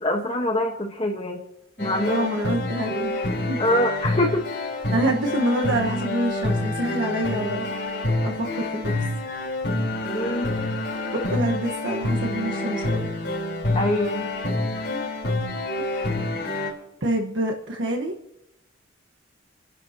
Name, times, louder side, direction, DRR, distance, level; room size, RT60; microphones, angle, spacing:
voice 1, 0.0-1.4 1.8-2.3 3.6-4.5 10.1-10.5 13.7-14.3, left 1 dB, 30° left, 2 dB, 1.3 m, -24 dB
sound 1, 1.8-16.7, left 2 dB, 60° left, 4.3 m, -27 dB
voice 2, 2.1-3.2 3.5-3.6 4.9-7.7 8.2-8.9 11.3-13.1 14.9-15.0 17.0-18.1, right 1 dB, 75° right, 0 dB, 1.5 m, -26 dB
29.0 x 11.0 x 3.0 m, 0.85 s
head